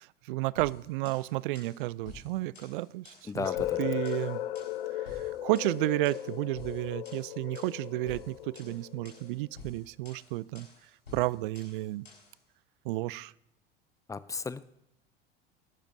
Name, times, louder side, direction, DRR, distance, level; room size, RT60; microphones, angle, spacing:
voice 1, 0.0-3.5 3.8-4.4 5.0-10.7 11.1-12.1 12.8-13.3, right 19 dB, 60° right, 0.4 m, -32 dB
sound 1, 0.6-12.4, left 4 dB, 85° left, 4.6 m, -52 dB
voice 2, 3.3-3.8 14.1-14.6, left 4 dB, 10° left, 0.5 m, -35 dB
sound 2, 3.4-9.3, left 13 dB, 65° left, 0.8 m, -36 dB
24.0 x 12.0 x 2.6 m
figure-of-eight pair, 75°, 29 cm